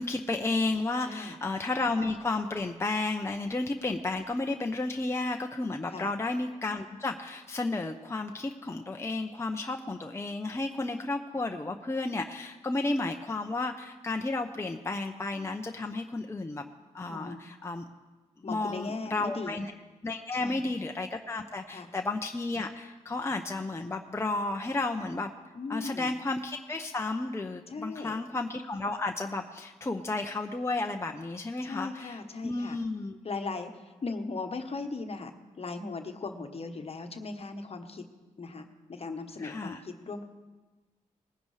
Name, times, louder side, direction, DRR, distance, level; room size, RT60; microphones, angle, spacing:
voice 1, 0.0-16.6 16.9-17.8 18.4-19.7 20.0-25.3 25.7-33.2 39.4-39.8, left 2 dB, 20° left, 4 dB, 0.7 m, -32 dB
voice 2, 1.0-1.4 5.9-6.1 17.1-17.4 18.4-19.6 20.4-20.7 21.7-21.9 25.5-26.1 27.7-28.2 31.6-32.8 33.2-38.1 38.4-40.2, left 3 dB, 45° left, 6 dB, 1.2 m, -38 dB
20.0 x 10.0 x 3.3 m, 1.2 s
cardioid pair, 60°, 14 cm